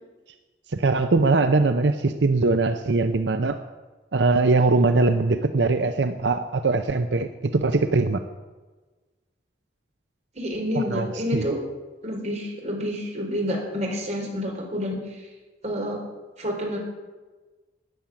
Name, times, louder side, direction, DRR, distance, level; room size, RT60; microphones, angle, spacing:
voice 1, 0.7-3.6 4.1-8.2 10.8-11.1 11.3-11.4, right 3 dB, 85° right, 9 dB, 0.7 m, -21 dB
voice 2, 10.3-11.6 12.0-15.3 15.6-16.0 16.4-16.8, equal, 40° right, 0 dB, 4.2 m, -29 dB
13.5 x 9.4 x 8.7 m, 1.3 s
head